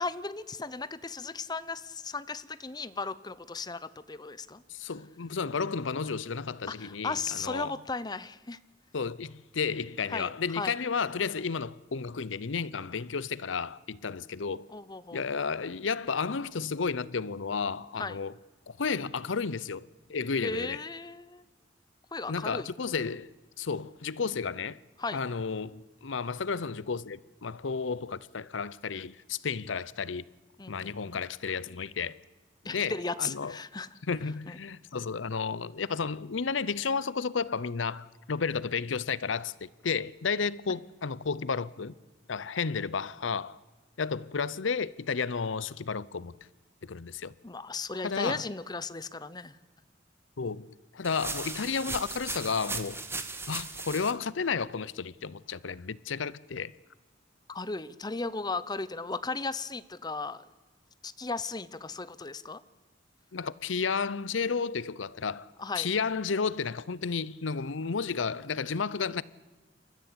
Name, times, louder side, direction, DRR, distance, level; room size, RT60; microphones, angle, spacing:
voice 1, 0.0-4.6 6.7-8.6 10.1-10.7 14.7-15.2 18.0-18.2 20.4-21.4 22.1-22.7 25.0-25.2 30.6-31.2 32.6-33.9 34.5-34.6 40.7-40.8 47.4-49.6 57.5-60.4 61.0-62.6 65.6-65.9, left 3 dB, 20° left, 0.8 m, -36 dB
voice 2, 4.7-7.8 8.9-14.7 15.1-18.3 18.7-20.8 22.3-24.8 25.1-30.2 30.7-32.2 32.7-33.6 34.1-41.9 42.3-43.6 44.0-46.3 46.8-47.3 48.0-48.4 50.4-53.0 53.5-56.7 63.3-69.2, left 5 dB, 85° left, 0.7 m, -32 dB
sound 1, 51.0-54.1, right 3 dB, 15° right, 1.7 m, -37 dB
28.5 x 14.0 x 8.7 m
head